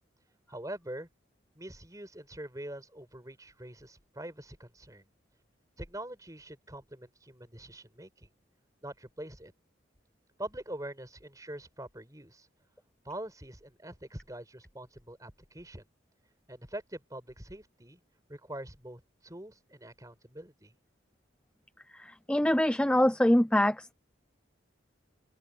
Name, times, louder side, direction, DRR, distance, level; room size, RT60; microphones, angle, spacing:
voice 1, 0.5-1.1 1.6-5.1 5.8-8.3 8.8-9.5 10.4-12.5 13.0-15.8 16.5-18.0 18.3-20.7, right 1 dB, 20° right, 4.8 m, -44 dB
voice 2, 21.9-23.9, left 1 dB, 5° left, 0.5 m, -24 dB
head